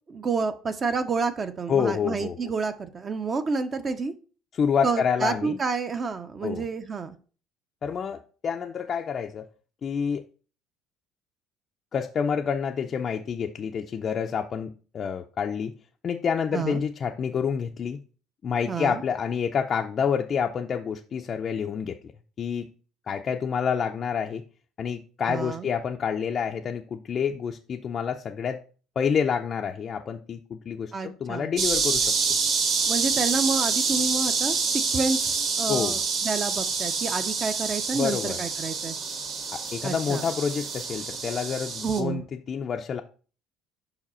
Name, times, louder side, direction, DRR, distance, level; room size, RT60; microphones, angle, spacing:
voice 1, 0.1-4.1 4.8-7.1 16.5-16.8 18.7-19.0 25.3-25.7 30.9-31.5 32.9-39.0 39.8-40.2 41.8-42.2, right 4 dB, 25° right, 0.5 m, -29 dB
voice 2, 1.7-2.5 4.5-5.6 6.4-6.7 7.8-9.5 9.8-10.2 11.9-15.7 16.0-18.0 18.4-22.0 22.4-22.7 23.1-24.4 24.8-28.6 29.0-32.2 35.7-36.0 37.9-38.4 39.5-43.0, left 7 dB, 35° left, 0.4 m, -28 dB
sound 1, 31.6-42.0, right 5 dB, 50° right, 1.3 m, -27 dB
5.4 x 4.8 x 4.2 m
cardioid pair, 140°, 0 cm